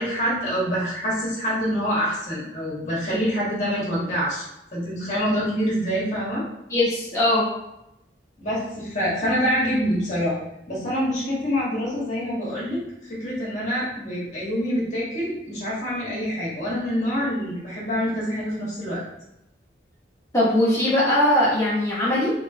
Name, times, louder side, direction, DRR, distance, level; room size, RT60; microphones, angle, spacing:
voice 1, 0.0-4.4 4.7-6.4 8.4-10.4 10.7-19.0, equal, 45° left, -7 dB, 1.4 m, -26 dB
voice 2, 6.7-7.5 20.3-22.3, left 1 dB, 15° left, -8 dB, 1.3 m, -20 dB
3.6 x 3.2 x 2.7 m, 0.86 s
head